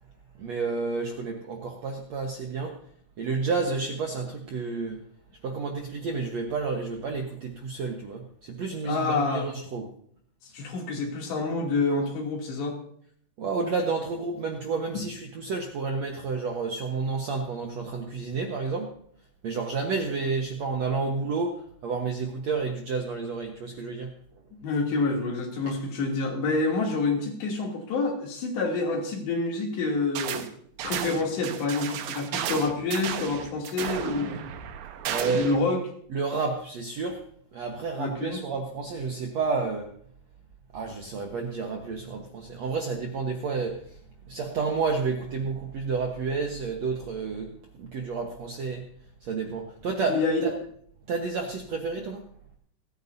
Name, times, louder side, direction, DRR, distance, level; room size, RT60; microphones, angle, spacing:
voice 1, 0.4-2.8 3.2-5.0 5.4-9.9 13.4-18.9 19.4-24.1 25.7-25.8 35.0-35.5 36.1-37.2 37.5-39.9 40.7-44.0 44.3-47.5 47.8-48.8 49.2-50.6 51.1-52.3, right 4 dB, 65° right, 2 dB, 1.7 m, -30 dB
voice 2, 8.8-9.5 10.5-12.8 24.5-30.5 30.8-34.4 35.4-35.8 38.0-38.4 50.1-50.4, left 3 dB, 80° left, 0 dB, 5.0 m, -27 dB
sound 1, 30.2-30.5 30.8-35.6, right 9 dB, 90° right, 3.3 m, -33 dB
28.5 x 9.5 x 2.7 m, 0.62 s
omnidirectional pair, 4.9 m